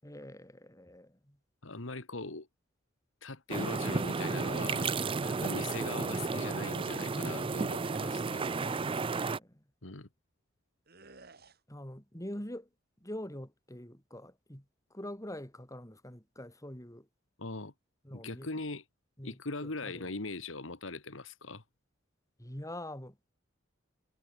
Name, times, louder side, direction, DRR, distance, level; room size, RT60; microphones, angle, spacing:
voice 1, 0.0-1.4 7.2-7.7 8.5-9.6 11.7-12.7 13.0-17.1 18.0-18.5 19.2-20.1 22.4-23.2, left 1 dB, 15° left, 4.9 m, -45 dB
voice 2, 1.6-2.5 3.2-4.9 5.2-8.5 9.8-10.1 17.4-17.7 18.1-18.8 19.2-21.6, left 3 dB, 80° left, 2.0 m, -41 dB
sound 1, 3.5-9.4, right 4 dB, 25° right, 0.5 m, -33 dB
sound 2, 3.9-5.0 7.4-8.5 10.9-11.6, right 3 dB, 55° right, 4.1 m, -54 dB
head